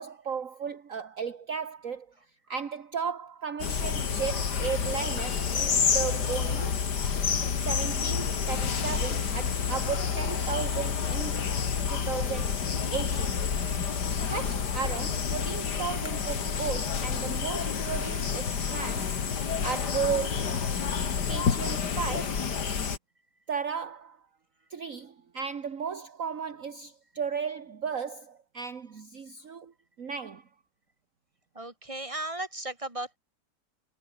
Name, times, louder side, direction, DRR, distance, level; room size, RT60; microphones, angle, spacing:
voice 1, 0.0-2.1 2.5-6.8 7.6-11.5 11.9-12.7 12.9-13.4 14.2-19.2 19.6-20.6 21.3-22.5 23.5-24.2 24.7-29.7 30.0-30.5, right 6 dB, 50° right, 1.9 m, -35 dB
sound 1, 3.6-23.0, left 6 dB, 70° left, 2.5 m, -29 dB
voice 2, 31.6-33.2, right 2 dB, 20° right, 3.8 m, -36 dB
omnidirectional pair, 1.9 m